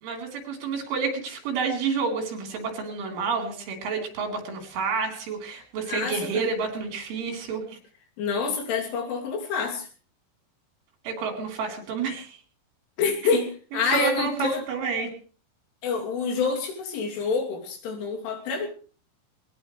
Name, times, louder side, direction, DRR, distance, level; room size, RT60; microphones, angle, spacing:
voice 1, 0.0-7.8 11.0-12.4 13.7-15.1, right 5 dB, 85° right, 2 dB, 6.4 m, -29 dB
voice 2, 5.9-6.5 8.2-9.9 13.0-14.6 15.8-18.7, left 5 dB, 90° left, 1 dB, 5.5 m, -27 dB
21.0 x 20.5 x 3.3 m, 0.40 s
omnidirectional pair, 5.4 m